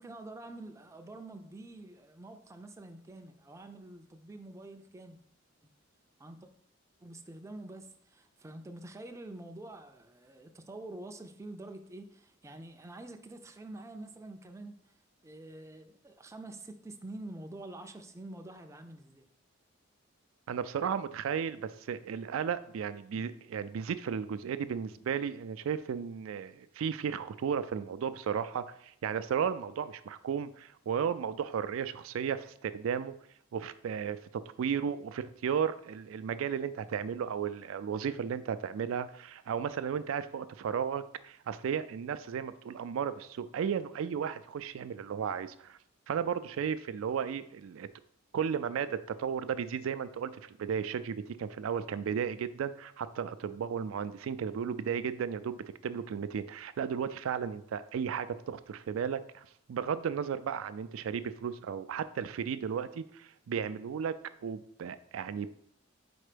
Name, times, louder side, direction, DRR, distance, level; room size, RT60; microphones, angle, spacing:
voice 1, 0.0-5.2 5.6-5.7 6.2-6.5 7.0-14.9 15.2-19.3, right 2 dB, 15° right, 6 dB, 0.4 m, -47 dB
voice 2, 20.5-33.1 33.5-34.2 34.6-45.8 46.1-47.9 48.3-64.1 64.4-65.5, right 7 dB, 80° right, 13 dB, 0.3 m, -34 dB
4.4 x 4.3 x 5.0 m, 0.68 s
head